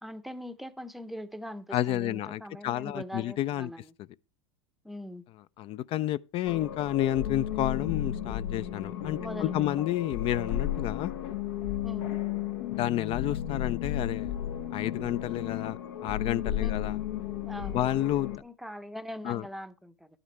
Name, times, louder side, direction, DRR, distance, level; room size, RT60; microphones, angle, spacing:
voice 1, 0.0-3.8 4.8-5.2 9.2-9.9 11.8-12.2 16.6-16.9 17.4-17.8 18.4-20.1, equal, ahead, 0.7 m, -41 dB
voice 2, 1.7-3.7 5.6-11.1 12.7-14.3 14.7-17.0 17.7-18.4 19.2-19.4, left 13 dB, 40° left, 0.4 m, -30 dB
sound 1, 6.4-18.4, left 11 dB, 80° left, 1.2 m, -33 dB
11.0 x 8.8 x 3.2 m
supercardioid pair, 110°, 14 cm